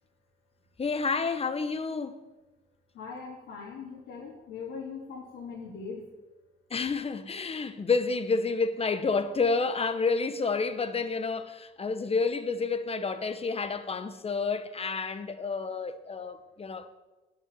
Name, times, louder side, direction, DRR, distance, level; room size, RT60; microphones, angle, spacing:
voice 1, 0.8-2.2 6.7-16.9, left 4 dB, 30° left, 1.0 m, -29 dB
voice 2, 2.9-6.0, left 5 dB, 90° left, 3.6 m, -40 dB
8.9 x 7.3 x 8.7 m
cardioid pair, 90°, 20 cm